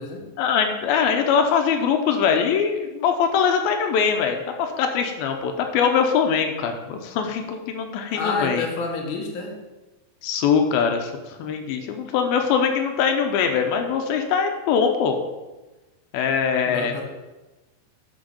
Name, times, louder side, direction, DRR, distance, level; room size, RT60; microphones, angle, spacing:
voice 1, 0.4-8.6 10.2-11.1 11.4-15.2 16.1-17.1, left 6 dB, 85° left, 5 dB, 2.6 m, -22 dB
voice 2, 8.1-9.5 16.7-17.1, left 4 dB, 50° left, 0 dB, 1.5 m, -28 dB
9.4 x 6.1 x 5.1 m, 1.1 s
omnidirectional pair, 4.3 m